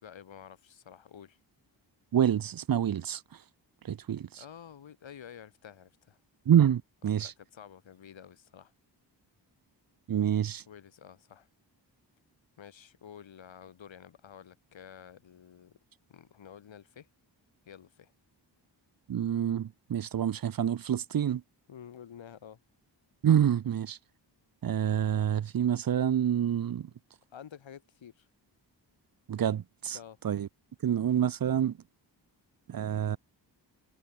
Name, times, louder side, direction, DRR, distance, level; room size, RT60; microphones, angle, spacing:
voice 1, 0.0-1.4 4.4-6.2 7.2-8.7 10.7-11.5 12.6-15.8 16.1-17.1 17.6-18.1 21.7-22.6 27.3-28.3 29.9-30.2, left 8 dB, 85° left, 6.4 m, -50 dB
voice 2, 2.1-3.2 3.9-4.4 6.5-7.3 10.1-10.6 19.1-21.4 23.2-24.0 24.6-26.9 29.3-30.0 30.2-30.5 30.8-31.7 32.7-33.2, right 9 dB, 50° right, 0.7 m, -27 dB
cardioid pair, 80°, 44 cm